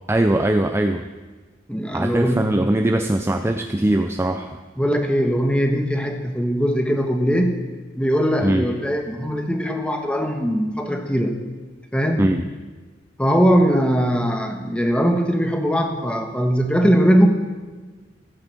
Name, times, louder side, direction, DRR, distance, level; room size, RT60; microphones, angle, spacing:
voice 1, 0.1-1.1 1.9-4.6 8.4-8.7 12.2-12.4, right 1 dB, 15° right, 6 dB, 0.4 m, -20 dB
voice 2, 1.7-2.7 4.8-7.5 8.0-11.3 11.9-12.2 13.2-17.3, equal, 5° left, 4 dB, 1.3 m, -20 dB
14.0 x 8.6 x 7.6 m, 1.4 s
head